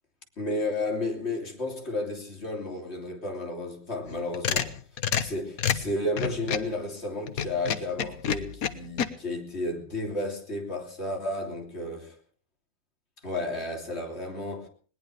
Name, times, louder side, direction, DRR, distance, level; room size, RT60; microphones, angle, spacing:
voice 1, 0.4-4.7 5.2-12.0 13.2-14.7, left 1 dB, 30° left, 3.3 m, -32 dB
sound 1, 4.1-6.7 7.3-9.1, left 8 dB, 50° left, 1.2 m, -28 dB
20.5 x 19.0 x 3.4 m
omnidirectional pair, 2.2 m